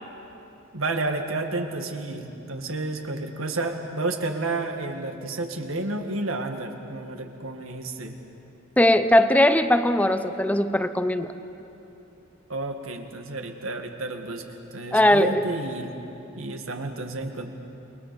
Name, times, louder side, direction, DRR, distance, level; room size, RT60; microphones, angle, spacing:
voice 1, 0.7-8.2 12.5-14.4 14.7-15.9 16.4-17.6, right 2 dB, 85° right, 4 dB, 2.1 m, -31 dB
voice 2, 8.8-11.3 14.9-15.4, left 1 dB, 5° left, 10 dB, 0.7 m, -19 dB
29.0 x 21.5 x 7.1 m, 2.9 s
head